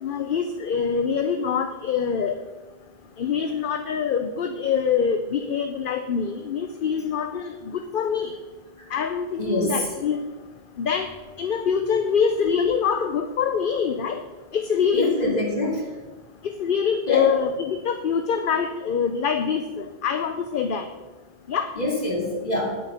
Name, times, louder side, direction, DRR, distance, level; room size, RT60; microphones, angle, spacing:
voice 1, 0.0-2.4 3.2-8.3 8.9-10.2 10.8-11.1 11.4-14.2 14.5-15.4 16.4-20.9 21.5-21.7, left 6 dB, 60° left, 7 dB, 0.8 m, -25 dB
voice 2, 9.4-9.7 14.9-15.9 17.1-17.3 21.8-22.8, left 2 dB, 40° left, -3 dB, 2.9 m, -25 dB
9.7 x 8.5 x 5.7 m, 1.2 s
omnidirectional pair, 1.1 m